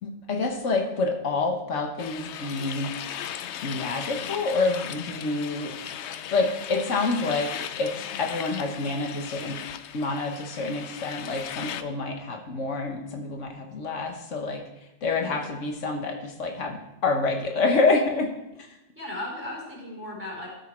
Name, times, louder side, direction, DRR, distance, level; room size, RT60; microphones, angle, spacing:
voice 1, 0.0-2.9 3.6-5.7 6.3-7.5 7.8-7.9 8.2-9.6 9.9-14.6 15.0-18.3, left 3 dB, 90° left, 3 dB, 1.5 m, -27 dB
sound 1, 2.0-11.8, left 9 dB, 70° left, 0.8 m, -37 dB
voice 2, 15.1-15.5 19.0-20.5, left 1 dB, 10° right, -3 dB, 4.0 m, -36 dB
12.5 x 6.8 x 4.4 m, 0.89 s
omnidirectional pair, 1.2 m